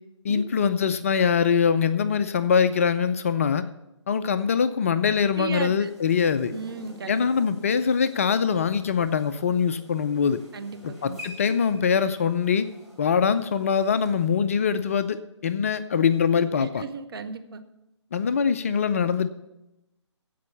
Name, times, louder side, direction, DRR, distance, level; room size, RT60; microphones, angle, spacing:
voice 1, 0.2-3.7 4.1-6.5 7.1-10.4 10.8-12.7 13.0-16.8 18.1-19.3, left 6 dB, 30° left, 12 dB, 0.4 m, -23 dB
voice 2, 5.4-5.9 6.5-7.2 10.5-11.2 16.6-17.6, right 5 dB, 50° right, 9 dB, 0.9 m, -35 dB
sound 1, 5.7-14.3, left 1 dB, ahead, 3.0 m, -48 dB
15.0 x 5.4 x 7.0 m, 0.92 s
figure-of-eight pair, 145°, 16 cm